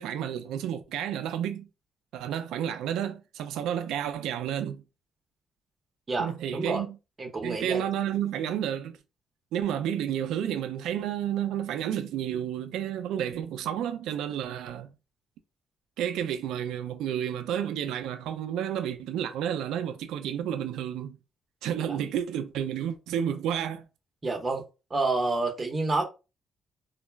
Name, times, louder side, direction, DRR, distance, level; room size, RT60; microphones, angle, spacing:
voice 1, 0.0-1.7 2.1-4.8 6.2-7.0 7.4-9.0 9.5-14.9 16.0-21.2 21.6-23.8, right 9 dB, 90° right, 0.3 m, -31 dB
voice 2, 6.1-6.8 7.2-7.8 24.2-24.6 24.9-26.0, right 3 dB, 35° right, 0.8 m, -28 dB
2.2 x 2.0 x 3.2 m
cardioid pair, 90°, 0 cm